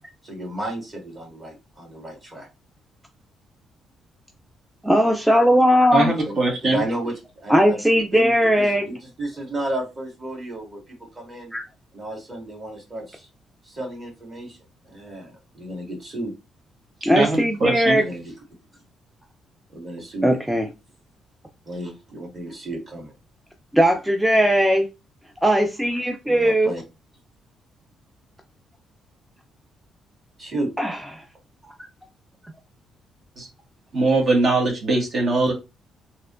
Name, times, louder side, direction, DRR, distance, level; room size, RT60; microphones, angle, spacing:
voice 1, 0.2-2.5 6.1-6.4 6.6-10.8 11.1-11.5 11.9-13.3 13.6-14.6 14.8-16.3 17.9-18.3 19.7-20.4 21.7-23.1 26.2-26.8 30.4-30.7, right 1 dB, 35° right, 1.9 m, -33 dB
voice 2, 4.8-6.1 7.5-8.8 11.5-11.6 17.0-18.0 20.2-20.7 23.7-24.9 25.4-26.7 30.8-31.2 31.6-31.7, equal, 5° right, 0.5 m, -18 dB
voice 3, 5.9-6.8 17.1-18.0 33.4-33.5 33.9-35.5, right 2 dB, 50° right, 1.2 m, -21 dB
3.2 x 2.8 x 2.5 m
cardioid pair, 90°, 0 cm